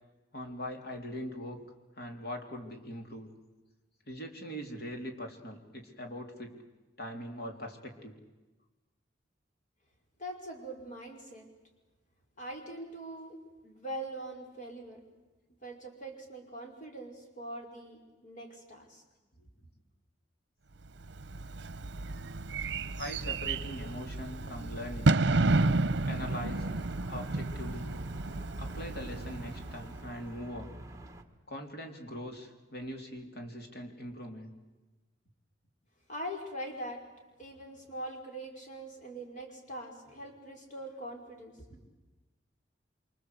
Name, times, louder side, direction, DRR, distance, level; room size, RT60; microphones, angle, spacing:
voice 1, 0.3-1.6 2.0-3.3 4.1-6.6 7.0-8.2 23.0-25.1 26.0-26.7 27.1-27.9 28.6-30.8 31.5-34.5, equal, 60° left, 4 dB, 3.8 m, -41 dB
voice 2, 10.2-11.5 12.4-15.0 15.6-19.0 19.4-19.5 36.1-37.1 37.4-41.7, right 1 dB, 45° left, 2 dB, 5.2 m, -42 dB
Bird / Fireworks, 21.0-30.2, right 2 dB, 65° right, 0.9 m, -31 dB
sound 1, 26.2-31.2, right 1 dB, 15° right, 1.8 m, -47 dB
27.0 x 25.5 x 8.3 m, 1.2 s
head